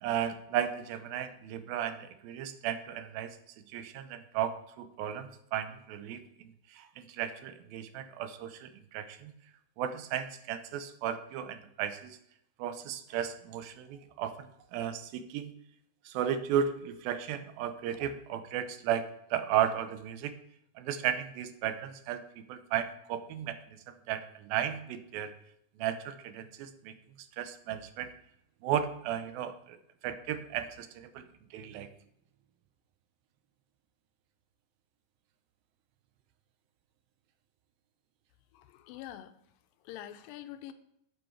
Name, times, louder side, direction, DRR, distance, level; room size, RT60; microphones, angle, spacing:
voice 1, 0.0-9.3 9.8-12.2 12.6-15.5 16.1-20.3 20.8-25.3 25.8-26.9 27.4-28.1 28.6-29.8 30.0-31.9, right 9 dB, 90° right, 10 dB, 2.5 m, -35 dB
voice 2, 38.5-39.3 39.8-40.7, left 12 dB, 85° left, 10 dB, 2.3 m, -45 dB
8.2 x 8.0 x 4.5 m, 0.76 s
omnidirectional pair, 4.2 m